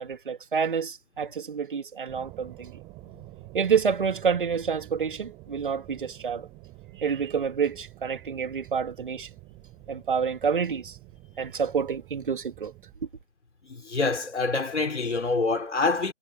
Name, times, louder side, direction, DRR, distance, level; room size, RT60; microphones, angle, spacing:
voice 1, 0.0-2.7 3.5-6.5 7.0-9.3 9.9-11.0 11.4-12.7, right 6 dB, 40° right, 2.9 m, -28 dB
sound 1, 2.1-12.9, right 21 dB, 10° right, 4.6 m, -48 dB
voice 2, 13.6-16.1, left 3 dB, 60° left, 5.1 m, -26 dB
figure-of-eight pair, 150°, 40 cm